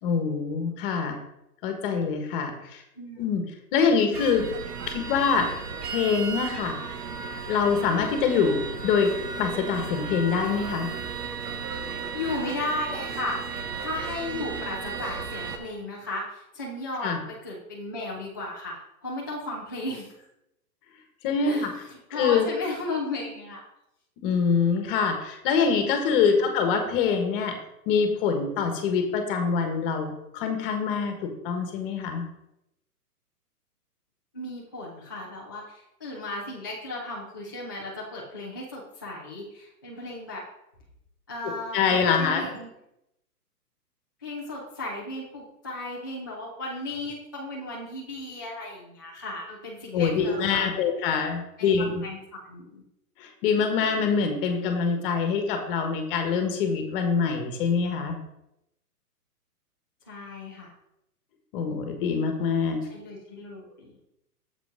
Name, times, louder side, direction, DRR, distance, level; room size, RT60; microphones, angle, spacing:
voice 1, 0.0-1.2 1.6-2.8 3.2-3.4 3.7-4.5 4.9-5.5 5.9-6.8 7.4-9.1 9.4-10.9 17.0-17.2 21.2-21.7 22.1-22.5 24.2-27.6 27.9-32.2 41.7-42.5 49.9-52.0 53.2-58.2 61.5-62.8, left 6 dB, 35° left, 5 dB, 1.4 m, -25 dB
voice 2, 3.0-3.4 12.1-13.4 13.8-20.1 21.4-23.6 26.0-26.6 34.3-40.4 41.3-42.7 44.2-50.8 51.6-52.2 52.5-52.8 60.1-60.7 62.9-64.0, left 2 dB, 15° left, -7 dB, 0.3 m, -35 dB
sound 1, 4.1-15.6, right 5 dB, 75° right, 1.3 m, -35 dB
7.4 x 5.1 x 5.0 m, 0.84 s
hypercardioid pair, 140°, 47 cm